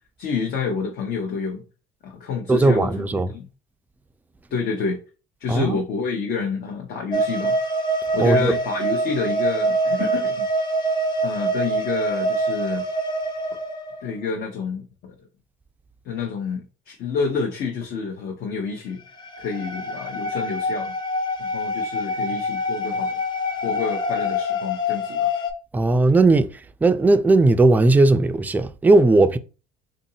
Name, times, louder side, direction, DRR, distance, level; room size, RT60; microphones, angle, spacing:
voice 1, 0.2-1.6 2.0-3.5 4.5-5.0 5.4-7.6 8.1-10.5 11.2-12.8 14.0-15.1 16.0-19.0 19.4-20.9 21.4-23.2 23.6-25.4, left 5 dB, 60° left, 0.8 m, -28 dB
voice 2, 2.5-3.3 5.5-5.8 8.2-8.5 25.7-26.5 26.8-29.4, right 2 dB, 10° right, 0.3 m, -17 dB
sound 1, 7.1-14.1 19.2-25.5, equal, 25° left, 0.7 m, -25 dB
3.9 x 2.6 x 2.7 m
supercardioid pair, 90°, 19 cm